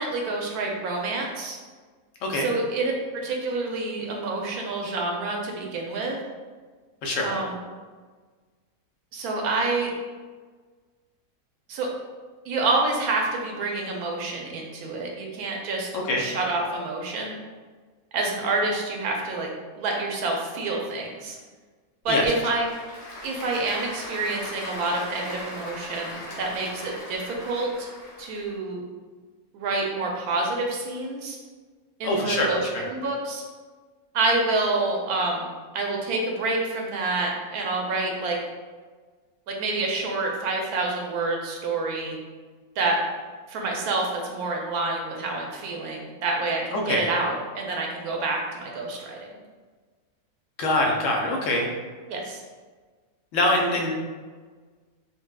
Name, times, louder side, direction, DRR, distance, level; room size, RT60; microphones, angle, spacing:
voice 1, 0.0-1.6 2.3-6.2 7.2-7.6 9.1-9.9 11.7-11.9 12.4-15.9 16.2-17.4 18.1-19.5 19.8-21.4 22.0-22.7 23.2-27.9 28.2-28.8 29.5-31.4 32.0-33.4 34.1-35.5 35.7-38.4 39.5-42.2 42.8-43.0 43.5-49.3 52.1-52.4, right 2 dB, 90° right, 0 dB, 1.1 m, -27 dB
voice 2, 7.0-7.3 15.9-16.2 22.1-22.2 32.0-32.8 46.7-47.1 50.6-51.7 53.3-54.0, left 1 dB, 70° left, 0 dB, 0.9 m, -24 dB
Applause / Crowd, 22.0-28.5, left 1 dB, 40° left, 0.6 m, -39 dB
4.0 x 2.1 x 2.2 m, 1.4 s
omnidirectional pair, 1.5 m